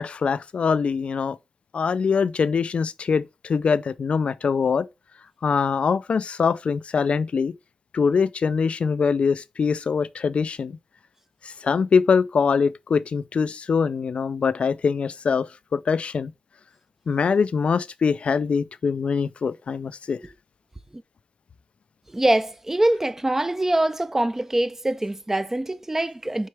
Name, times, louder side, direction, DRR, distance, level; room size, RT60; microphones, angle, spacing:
voice 1, 0.0-1.4 1.7-4.9 5.4-7.5 7.9-10.8 11.4-16.3 17.1-20.2, left 5 dB, 70° left, 0.4 m, -23 dB
voice 2, 22.1-26.5, right 1 dB, 20° right, 0.6 m, -24 dB
6.3 x 4.5 x 3.3 m
cardioid pair, 65°, 2 cm